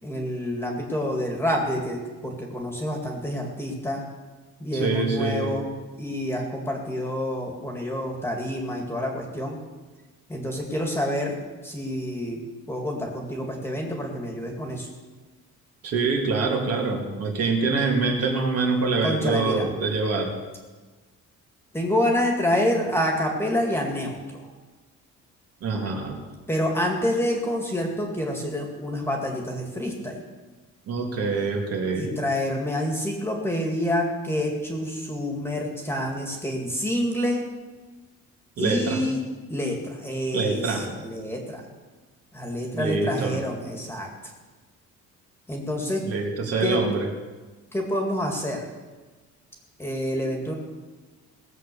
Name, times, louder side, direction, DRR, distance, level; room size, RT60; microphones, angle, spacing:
voice 1, 0.0-4.0 4.6-5.7 6.0-9.6 10.3-11.4 11.6-12.4 12.7-14.9 19.0-19.7 21.7-24.5 26.5-30.2 31.9-37.4 38.6-41.6 42.3-44.1 45.5-46.0 46.6-46.8 47.7-48.7 49.8-50.5, left 1 dB, 10° left, 1 dB, 2.1 m, -27 dB
voice 2, 4.7-5.5 15.8-20.3 25.6-26.2 30.9-32.2 38.6-39.1 40.3-40.9 42.7-43.4 46.0-47.1, right 3 dB, 55° right, 1 dB, 2.7 m, -25 dB
19.0 x 7.7 x 6.9 m, 1.3 s
cardioid pair, 170°, 30 cm